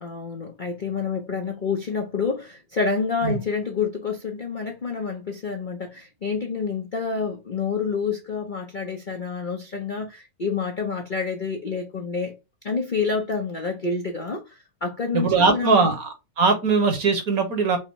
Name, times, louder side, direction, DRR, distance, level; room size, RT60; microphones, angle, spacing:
voice 1, 0.0-12.3 12.6-15.9, left 5 dB, 60° left, 0.5 m, -28 dB
voice 2, 15.1-17.8, right 4 dB, 55° right, 1.5 m, -21 dB
5.4 x 2.1 x 4.5 m
omnidirectional pair, 2.0 m